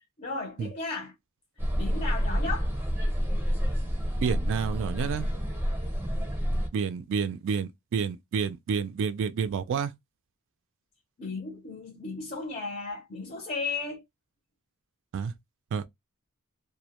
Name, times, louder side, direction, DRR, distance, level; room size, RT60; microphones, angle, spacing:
voice 1, 0.2-1.1 1.7-2.7 11.2-14.0, left 3 dB, 35° left, 0.6 m, -35 dB
sound 1, 1.6-6.7, equal, 10° right, 0.6 m, -28 dB
voice 2, 4.2-5.3 6.7-9.9 15.1-15.3 15.7-15.9, right 6 dB, 60° right, 0.3 m, -29 dB
2.1 x 2.1 x 2.8 m
head